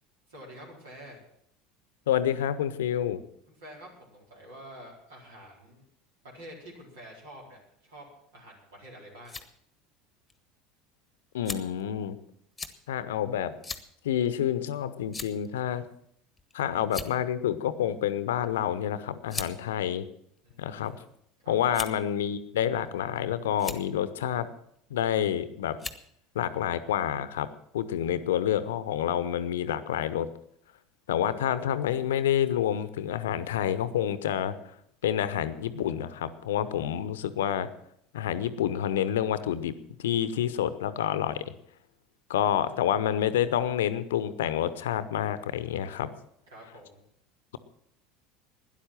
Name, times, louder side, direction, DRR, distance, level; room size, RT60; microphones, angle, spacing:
voice 1, 0.3-1.2 3.5-5.8 6.2-8.1 8.3-9.4 20.4-21.1 21.4-21.8 42.4-43.0 46.5-47.0, equal, 70° right, -2 dB, 4.3 m, -48 dB
voice 2, 2.1-3.2 11.3-12.2 12.9-13.6 14.0-15.8 16.5-20.1 20.6-21.0 21.5-24.5 24.9-25.8 26.3-27.5 27.7-30.3 31.1-34.5 35.0-37.7 38.1-39.7 40.0-41.4 42.3-46.1, left 10 dB, 70° left, 14 dB, 0.8 m, -28 dB
sound 1, 9.2-9.5 10.3-10.4 11.5-11.8 12.6-12.8 13.6-13.9 14.2-14.4 15.1-15.5 16.4-16.5 16.8-17.3 18.4-18.6 19.3-19.5 20.4-20.9 21.7-22.1 22.9-23.2 23.5-23.8 25.0-25.3 25.8-26.1, left 4 dB, 15° left, 1.3 m, -38 dB
12.5 x 10.5 x 7.6 m, 0.71 s
figure-of-eight pair, 70°, 0 cm